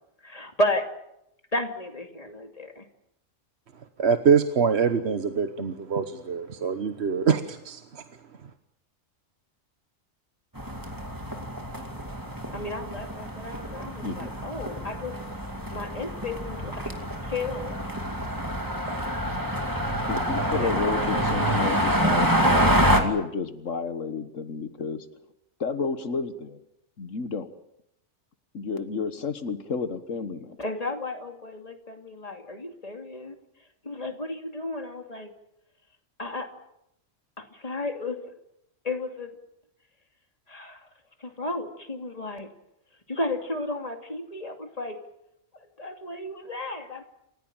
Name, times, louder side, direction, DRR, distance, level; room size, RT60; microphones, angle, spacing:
voice 1, 0.2-0.9 1.5-2.8 12.5-15.2 15.7-16.9 17.2-17.8 18.9-19.4 20.4-21.6 30.6-33.4 33.8-35.4 36.2-36.5 37.4-38.3 38.8-39.4 40.5-40.9 41.2-42.5 43.1-45.0 45.5-47.0, left 2 dB, 30° left, 4 dB, 2.7 m, -33 dB
voice 2, 4.0-8.0, right 6 dB, 60° right, 8 dB, 1.4 m, -24 dB
sound 1, 10.6-23.0, equal, 15° right, 2.6 m, -27 dB
voice 3, 20.1-25.1 25.6-26.6 27.0-27.5 28.5-30.6, left 5 dB, 80° left, 10 dB, 1.7 m, -31 dB
28.5 x 15.5 x 8.9 m, 0.83 s
omnidirectional pair, 1.3 m